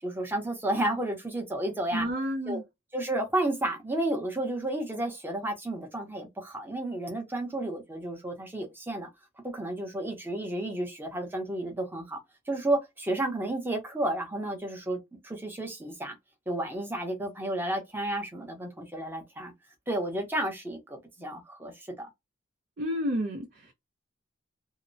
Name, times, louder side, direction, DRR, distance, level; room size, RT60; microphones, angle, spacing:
voice 1, 0.0-2.1 2.5-2.6 2.9-9.1 9.4-12.2 12.5-15.0 15.2-16.2 16.5-19.5 19.9-22.1, right 1 dB, 10° right, 0.8 m, -32 dB
voice 2, 1.9-2.6 22.8-23.7, equal, 55° right, 0.6 m, -30 dB
2.7 x 2.0 x 2.5 m
head